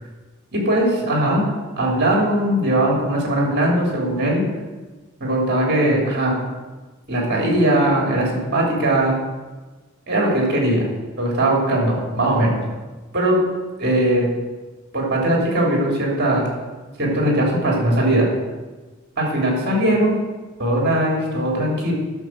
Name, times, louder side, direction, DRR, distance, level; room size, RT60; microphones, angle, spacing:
voice 1, 0.5-1.5 1.8-4.4 5.2-6.4 7.1-9.2 10.1-10.8 11.2-12.6 13.1-13.4 13.8-14.3 14.9-16.4 17.0-18.3 19.2-20.2 20.6-21.9, right 1 dB, 45° right, -1 dB, 3.1 m, -19 dB
10.5 x 6.3 x 7.4 m, 1.3 s
head